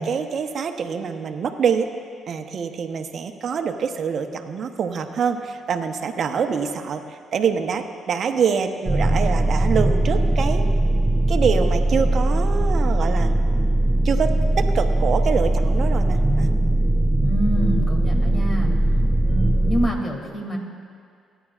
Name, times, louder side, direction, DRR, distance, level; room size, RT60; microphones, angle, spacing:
voice 1, 0.0-1.9 2.3-10.7 11.3-13.3 14.0-16.5, right 6 dB, 60° right, 6 dB, 1.0 m, -25 dB
sound 1, 8.9-19.9, right 1 dB, 5° right, 1.0 m, -20 dB
voice 2, 17.2-18.7 19.2-20.6, equal, 35° left, 1 dB, 2.7 m, -27 dB
25.0 x 10.5 x 2.5 m, 2.2 s
supercardioid pair, 60°, 0 cm